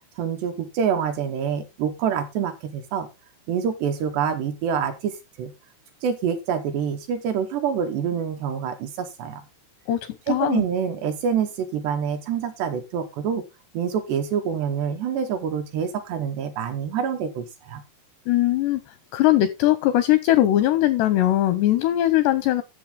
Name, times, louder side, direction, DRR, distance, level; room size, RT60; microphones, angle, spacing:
voice 1, 0.2-3.1 3.5-5.5 6.0-9.4 10.3-13.4 13.7-17.8, right 7 dB, 70° right, 2.7 m, -26 dB
voice 2, 9.9-10.6 18.3-18.8 19.1-22.6, left 14 dB, 85° left, 2.4 m, -20 dB
13.5 x 7.2 x 3.7 m
omnidirectional pair, 5.8 m